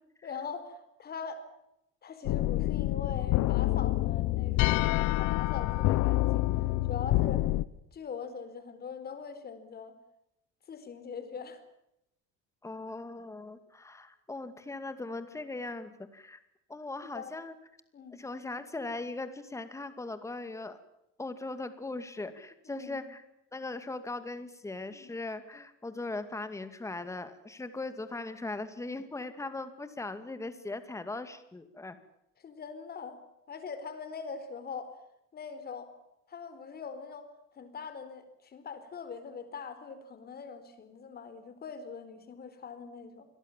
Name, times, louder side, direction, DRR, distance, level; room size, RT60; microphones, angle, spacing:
voice 1, 0.2-1.4 2.0-6.4 6.9-7.5 7.9-9.9 10.7-11.6 17.0-17.4 17.9-18.2 22.7-23.0 24.9-25.1 32.4-33.2 33.5-34.9 35.3-35.9 36.3-37.3 37.5-43.3, left 6 dB, 30° left, 11 dB, 4.3 m, -42 dB
sound 1, 2.2-7.6, left 17 dB, 75° left, 1.1 m, -27 dB
voice 2, 12.6-16.4 16.7-17.5 18.1-20.8 21.2-23.2 23.5-32.0, left 2 dB, 10° left, 10 dB, 2.3 m, -39 dB
28.5 x 22.0 x 7.4 m, 0.83 s
cardioid pair, 165°, 30 cm